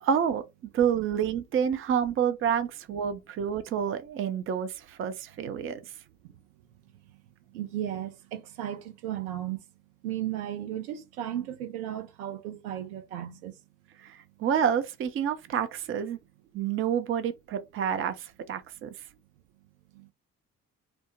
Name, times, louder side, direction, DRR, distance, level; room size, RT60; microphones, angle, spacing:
voice 1, 0.0-5.8 14.0-16.2 16.5-18.9, right 8 dB, 30° right, 0.5 m, -28 dB
voice 2, 7.5-9.6 10.0-13.5 19.9-20.1, right 11 dB, 70° right, 0.6 m, -35 dB
2.9 x 2.0 x 2.9 m
figure-of-eight pair, 45°, 45 cm